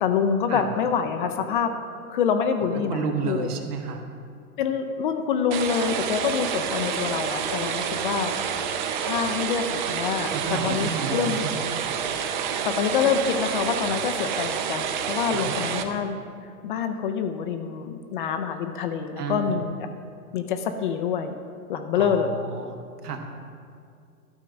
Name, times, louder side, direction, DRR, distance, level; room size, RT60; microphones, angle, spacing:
voice 1, 0.0-1.7 2.1-3.5 4.6-8.4 9.0-10.3 10.6-11.4 12.6-16.2 16.6-19.7 20.3-21.4 21.7-22.3, left 7 dB, 35° left, 7 dB, 0.4 m, -26 dB
voice 2, 2.9-4.0 10.3-11.6 12.4-12.7 15.3-15.5 19.2-19.6 21.9-23.2, right 5 dB, 75° right, 4 dB, 1.4 m, -31 dB
sound 1, 5.5-15.8, right 7 dB, 35° right, 0.5 m, -28 dB
12.0 x 4.5 x 6.2 m, 2.3 s
hypercardioid pair, 135°, 46 cm